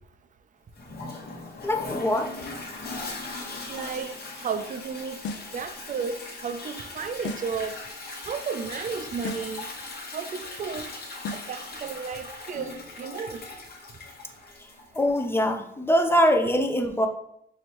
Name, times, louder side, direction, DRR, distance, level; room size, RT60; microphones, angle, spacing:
Toilet flush, 0.8-15.4, left 3 dB, 50° left, 1.0 m, -39 dB
voice 1, 1.6-2.3 14.9-17.1, equal, 10° left, 5 dB, 0.5 m, -23 dB
voice 2, 3.7-5.3 5.5-7.9 8.2-9.7 10.1-11.0 11.3-13.6, right 6 dB, 40° right, 9 dB, 0.5 m, -33 dB
sound 1, 5.2-5.6 7.2-7.6 9.2-9.6 11.2-11.6, left 3 dB, 65° left, 0.4 m, -36 dB
4.6 x 3.1 x 3.0 m, 0.76 s
cardioid pair, 90°, 20 cm